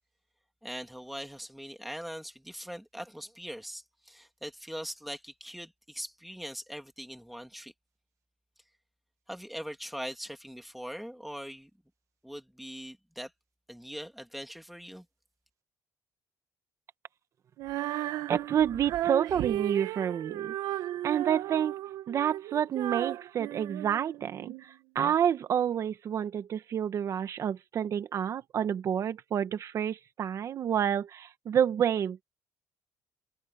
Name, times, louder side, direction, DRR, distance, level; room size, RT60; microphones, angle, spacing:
voice 1, 0.6-7.7 9.3-11.7 12.2-13.3 13.7-15.1, equal, ahead, 2.8 m, -41 dB
Female singing, 17.6-24.6, right 13 dB, 80° right, 1.5 m, -35 dB
voice 2, 17.9-20.5 21.0-21.7 22.1-32.2, right 9 dB, 50° right, 1.7 m, -29 dB
cardioid pair, 125°, 7 cm